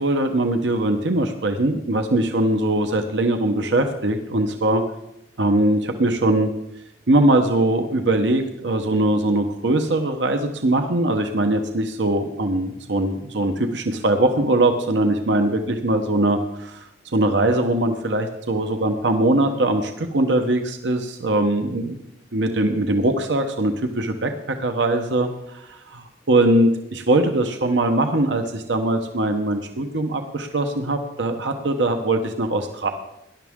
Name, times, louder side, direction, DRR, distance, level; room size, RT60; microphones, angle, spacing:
voice 1, 0.0-4.8 5.4-6.5 7.1-22.0 22.3-24.3 24.6-32.9, right 1 dB, 80° right, 5 dB, 1.0 m, -21 dB
19.0 x 11.5 x 3.7 m, 0.84 s
head